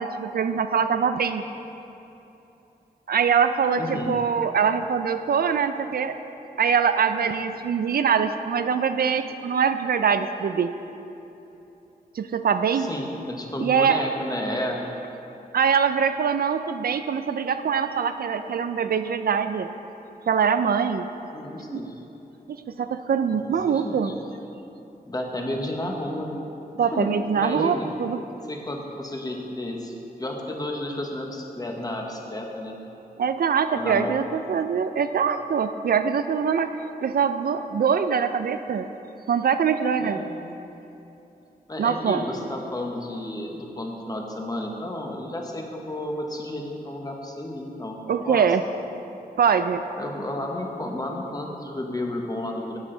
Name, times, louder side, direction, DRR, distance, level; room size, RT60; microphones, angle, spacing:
voice 1, 0.0-1.4 3.1-6.2 6.6-10.7 12.2-12.9 13.6-14.0 15.5-19.7 20.3-21.1 21.7-21.8 22.8-24.1 26.8-28.2 33.2-38.9 39.3-40.2 41.8-42.2 48.1-48.6 49.4-49.8, right 6 dB, 70° right, 9 dB, 0.4 m, -23 dB
voice 2, 3.8-4.1 12.7-14.8 21.3-21.9 23.3-24.1 25.0-26.4 26.9-27.9 28.5-29.9 30.2-32.8 33.7-34.2 40.0-40.3 41.7-48.0 48.2-48.4 50.0-52.8, left 1 dB, 25° left, 0 dB, 1.1 m, -32 dB
11.0 x 8.3 x 3.9 m, 2.9 s
wide cardioid pair, 130°, 16 cm